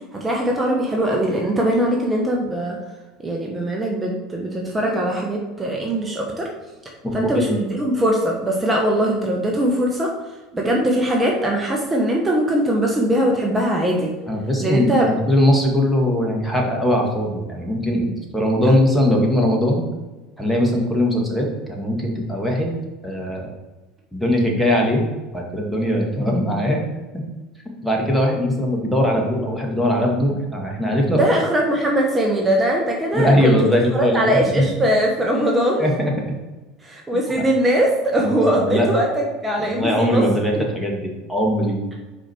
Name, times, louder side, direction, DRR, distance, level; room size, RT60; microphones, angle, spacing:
voice 1, 0.1-2.8 3.2-6.5 7.1-10.1 10.5-14.1 14.6-15.2 31.1-33.6 33.9-35.8 36.8-40.2 40.6-40.7, right 1 dB, 15° right, -1 dB, 1.2 m, -21 dB
voice 2, 7.0-7.5 14.3-19.8 20.4-22.7 23.0-23.5 24.1-25.0 25.3-26.8 27.1-27.2 27.8-31.3 33.1-34.7 35.8-36.1 37.3-37.4 38.2-38.3 38.7-38.9 39.6-41.8, equal, ahead, -1 dB, 1.9 m, -20 dB
5.0 x 4.9 x 4.5 m, 1.1 s
hypercardioid pair, 85°, 0 cm